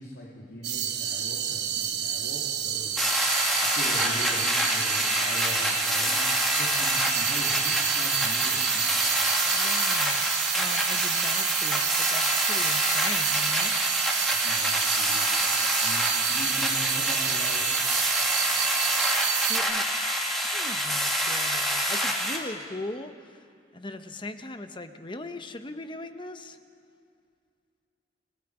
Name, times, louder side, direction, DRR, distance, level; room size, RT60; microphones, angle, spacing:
voice 1, 0.0-9.3 14.3-17.7, equal, 90° left, -4 dB, 3.0 m, -41 dB
sound 1, 0.6-19.6, right 10 dB, 75° right, 1.2 m, -29 dB
sound 2, 3.0-22.4, equal, ahead, 2.2 m, -27 dB
voice 2, 9.5-13.8 19.3-23.4 23.7-26.6, left 2 dB, 30° left, 8 dB, 0.9 m, -40 dB
29.5 x 18.0 x 4.9 m, 2.3 s
head